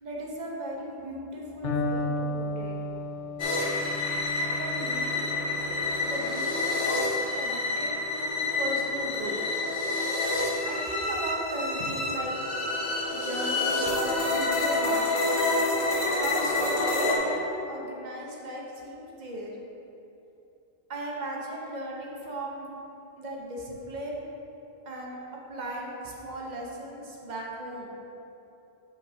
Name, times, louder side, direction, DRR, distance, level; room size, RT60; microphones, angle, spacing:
voice 1, 0.0-2.7 4.6-5.3 6.0-9.4 10.1-12.3 13.1-15.5 16.0-19.5 20.9-22.7 23.2-24.3 24.8-25.2 25.5-27.9, right 1 dB, 40° right, -2 dB, 1.1 m, -37 dB
Electric guitar, 1.6-9.5, left 1 dB, 80° left, 1.2 m, -35 dB
sound 1, 3.4-17.2, left 2 dB, 45° left, 1.2 m, -28 dB
5.7 x 5.7 x 5.0 m, 2.9 s
omnidirectional pair, 1.2 m